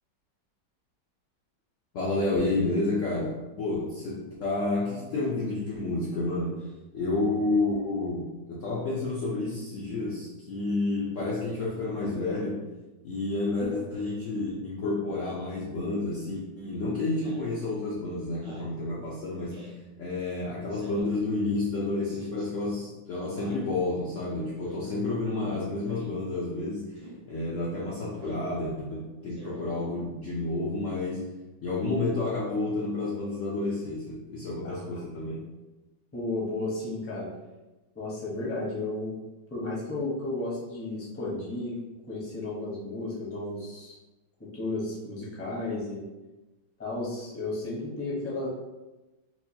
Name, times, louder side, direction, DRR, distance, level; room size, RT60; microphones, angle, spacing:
voice 1, 1.9-6.7 6.9-12.7 13.0-19.7 20.0-27.0 27.3-31.2 31.6-35.4, left 2 dB, 85° left, -5 dB, 0.6 m, -30 dB
Speech synthesizer, 17.2-17.5 18.3-18.7 19.5-19.8 20.7-21.1 22.0-22.5 23.3-23.7 24.6-24.9 25.8-26.1 27.0-27.2 28.1-28.5 29.3-29.7, right 2 dB, 80° right, 1.8 m, -48 dB
voice 2, 36.1-37.3 37.9-39.1 39.5-41.8 42.1-44.0 44.5-46.0 46.8-48.5, left 2 dB, 20° left, -6 dB, 0.4 m, -33 dB
4.6 x 2.2 x 2.8 m, 1.1 s
omnidirectional pair, 2.1 m